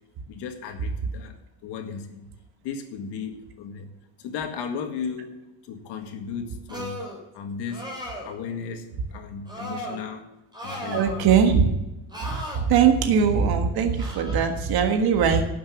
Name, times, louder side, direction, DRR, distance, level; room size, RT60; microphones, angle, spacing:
voice 1, 0.3-1.4 1.6-2.3 2.6-3.9 4.2-5.4 5.6-7.0 7.3-7.9 8.2-10.2 10.6-11.3, left 6 dB, 85° left, 5 dB, 1.9 m, -35 dB
sound 1, 6.7-7.2 7.7-8.3 9.5-10.0 10.5-11.4 12.1-12.6 14.0-14.5, equal, 10° right, 3.7 m, -35 dB
voice 2, 10.9-11.7 12.2-15.4, right 7 dB, 65° right, 5 dB, 1.7 m, -21 dB
12.0 x 7.4 x 7.4 m, 0.99 s
cardioid pair, 150°, 40 cm